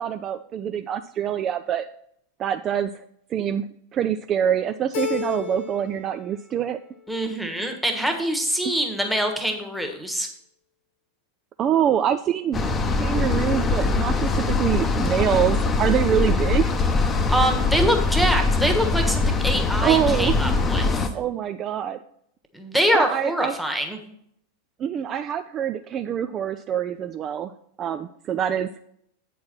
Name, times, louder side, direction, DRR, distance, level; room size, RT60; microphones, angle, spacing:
voice 1, 0.0-1.9 2.4-2.9 3.3-3.6 3.9-6.8 8.6-8.8 11.6-12.6 12.9-16.7 19.8-20.4 21.1-22.0 22.9-23.6 24.8-27.5 27.8-28.7, right 9 dB, 30° right, 10 dB, 0.3 m, -25 dB
Keyboard (musical), 4.9-6.0 6.4-7.1, left 8 dB, 40° left, 1.1 m, -32 dB
voice 2, 7.1-10.3 17.3-21.1 22.5-24.0, equal, ahead, 5 dB, 1.3 m, -24 dB
sound 1, 12.5-21.1, left 3 dB, 20° left, 0.7 m, -22 dB
8.3 x 4.7 x 5.9 m, 0.71 s
figure-of-eight pair, 90°, 0 cm